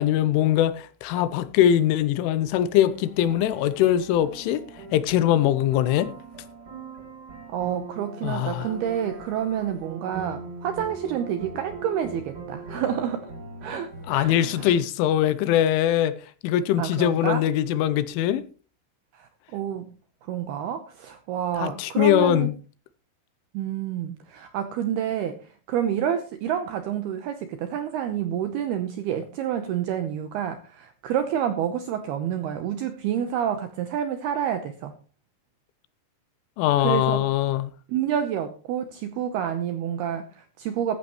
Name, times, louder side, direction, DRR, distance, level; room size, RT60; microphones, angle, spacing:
voice 1, 0.0-6.1 8.2-8.7 14.1-16.1 16.4-18.4 21.6-22.5 36.6-37.7, left 11 dB, 85° left, 3.2 m, -22 dB
sound 1, 2.9-14.7, right 4 dB, 30° right, 1.9 m, -41 dB
voice 2, 7.5-13.3 13.6-14.7 16.8-17.4 19.1-19.9 20.2-22.5 23.5-25.4 25.7-34.9 36.8-37.2 37.9-41.0, right 9 dB, 80° right, 2.3 m, -28 dB
14.5 x 14.0 x 3.1 m
omnidirectional pair, 5.7 m